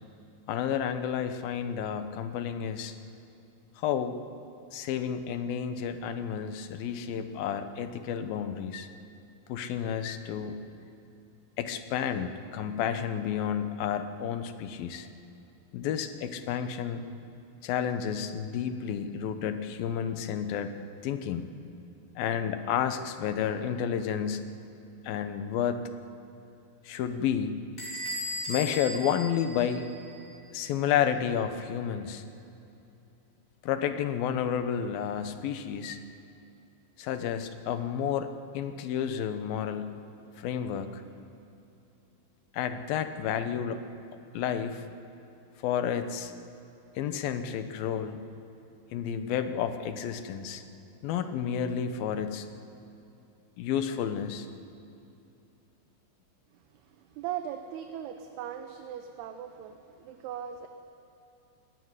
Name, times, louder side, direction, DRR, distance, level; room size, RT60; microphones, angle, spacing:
voice 1, 0.5-3.0 3.8-4.2 4.7-8.9 9.5-10.6 11.6-15.1 15.7-17.0 17.6-20.7 21.0-21.5 22.2-24.5 25.0-25.8 26.8-27.7 28.5-29.9 30.5-32.2 33.6-36.0 37.0-40.0 40.4-41.0 42.5-43.8 44.3-44.9 45.6-46.3 47.0-48.2 48.9-50.6 51.0-52.5 53.6-54.5, left 8 dB, 70° left, 9 dB, 2.6 m, -31 dB
Bell / Door, 27.8-30.3, left 1 dB, 20° left, 5.9 m, -37 dB
voice 2, 56.9-60.7, right 9 dB, 75° right, 6 dB, 2.8 m, -39 dB
21.5 x 17.0 x 9.8 m, 2.7 s
omnidirectional pair, 4.8 m